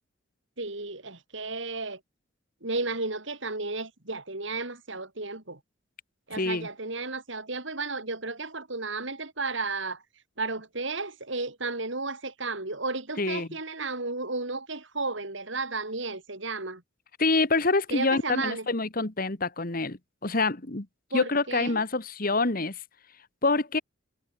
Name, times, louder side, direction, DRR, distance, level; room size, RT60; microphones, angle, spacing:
voice 1, 0.6-2.0 2.6-5.6 6.3-10.0 10.4-16.8 17.9-18.7 21.1-21.8, right 3 dB, 65° right, 3.9 m, -33 dB
voice 2, 6.3-6.7 13.2-13.5 17.2-20.9 21.1-22.8 23.4-23.8, left 3 dB, 45° left, 1.7 m, -26 dB
head